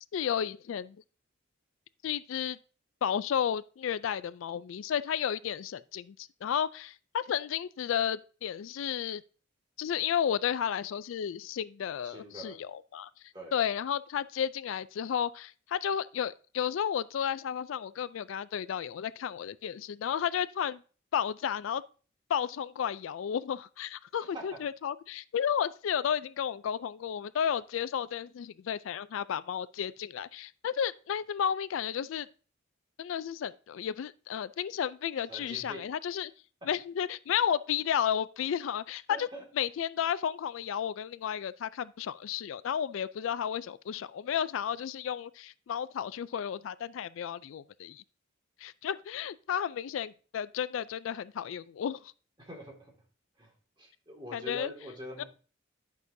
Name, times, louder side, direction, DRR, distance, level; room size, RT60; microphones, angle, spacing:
voice 1, 0.1-1.0 2.0-2.6 3.0-9.2 9.8-13.1 13.5-20.8 21.1-21.8 22.3-32.3 33.0-36.3 36.7-39.3 39.6-48.0 48.6-52.0 54.3-54.7 55.2-55.3, left 8 dB, 80° left, 0.3 m, -32 dB
voice 2, 12.0-12.6 13.3-13.6 24.3-24.6 35.3-35.8 36.6-36.7 39.1-39.4 52.4-52.9 53.4-53.5 53.8-55.2, right 1 dB, 25° right, 2.0 m, -44 dB
10.5 x 6.1 x 2.7 m
head